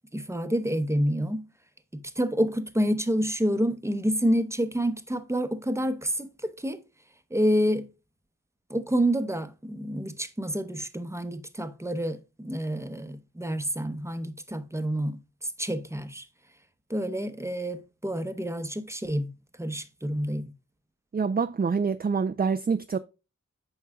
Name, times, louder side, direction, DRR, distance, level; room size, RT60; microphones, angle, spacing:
voice 1, 0.1-1.5 1.9-6.8 7.3-7.9 8.7-15.2 15.6-16.3 16.9-19.3 19.6-20.4, equal, 10° right, 0.8 m, -28 dB
voice 2, 21.1-23.0, right 5 dB, 30° right, 0.4 m, -26 dB
8.4 x 5.5 x 2.2 m
wide cardioid pair, 65°, 31 cm